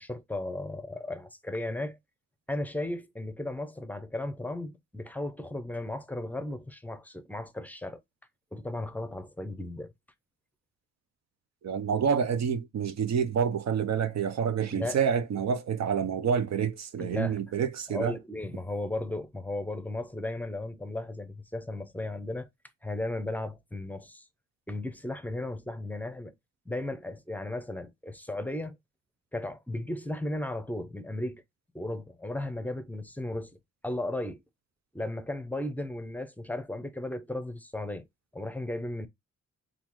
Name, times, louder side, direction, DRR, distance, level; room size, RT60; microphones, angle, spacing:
voice 1, 0.0-2.0 2.5-8.0 8.5-9.9 14.7-15.0 17.0-17.4 17.9-22.5 22.8-24.2 24.7-26.3 26.7-28.8 29.3-31.4 31.7-33.5 33.8-34.4 34.9-38.0 38.3-39.1, left 1 dB, 5° left, 0.6 m, -35 dB
voice 2, 11.6-18.1, right 7 dB, 65° right, 0.6 m, -28 dB
3.9 x 2.4 x 2.9 m
cardioid pair, 80°, 30 cm